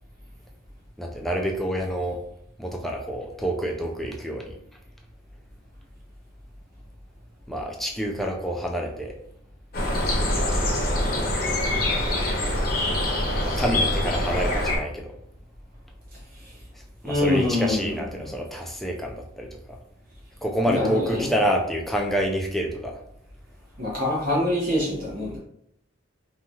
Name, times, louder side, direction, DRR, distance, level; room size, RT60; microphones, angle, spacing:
voice 1, 1.0-2.2 2.6-4.5 7.5-9.1 10.6-10.7 13.4-15.1 17.0-19.5 20.4-23.0, equal, ahead, 1 dB, 0.3 m, -27 dB
sound 1, 9.7-14.8, left 1 dB, 50° left, 0.7 m, -24 dB
voice 2, 17.0-18.3 20.6-21.3 23.8-25.4, left 1 dB, 50° right, -5 dB, 0.9 m, -25 dB
2.9 x 2.3 x 2.7 m, 0.72 s
head